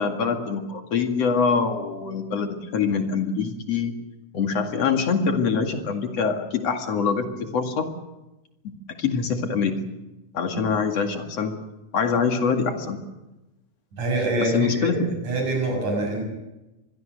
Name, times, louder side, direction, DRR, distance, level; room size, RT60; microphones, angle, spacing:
voice 1, 0.0-3.9 4.3-7.9 9.0-9.7 10.3-11.5 11.9-13.0 14.4-15.1, left 5 dB, 50° left, 4 dB, 3.1 m, -24 dB
voice 2, 13.9-15.0 15.2-16.2, right 2 dB, 65° right, 1 dB, 7.6 m, -25 dB
25.5 x 22.0 x 6.6 m, 1.0 s
omnidirectional pair, 3.8 m